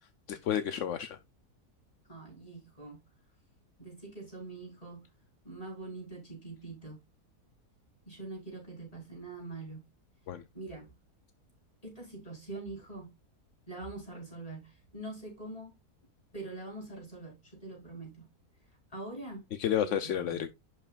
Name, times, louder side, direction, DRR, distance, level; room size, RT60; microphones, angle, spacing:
voice 1, 0.3-1.2 10.3-10.4 19.6-20.5, left 10 dB, 65° left, 0.9 m, -31 dB
voice 2, 2.1-3.0 3.8-5.1 5.5-7.0 8.1-9.8 10.5-10.9 11.8-13.1 13.7-15.8 16.3-18.3 18.9-19.5 19.8-20.4, right 2 dB, 20° left, 5.0 m, -44 dB
11.5 x 5.7 x 2.4 m
omnidirectional pair, 1.7 m